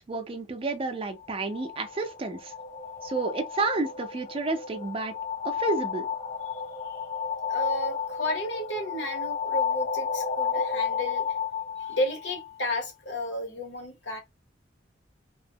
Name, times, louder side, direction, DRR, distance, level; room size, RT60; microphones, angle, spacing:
voice 1, 0.0-2.5 3.0-5.1 5.4-6.1, right 3 dB, 30° right, 0.4 m, -30 dB
sound 1, 1.2-12.9, left 7 dB, 40° left, 0.4 m, -32 dB
voice 2, 7.5-11.3 11.8-14.2, left 1 dB, 70° left, 0.9 m, -32 dB
2.9 x 2.0 x 2.7 m
head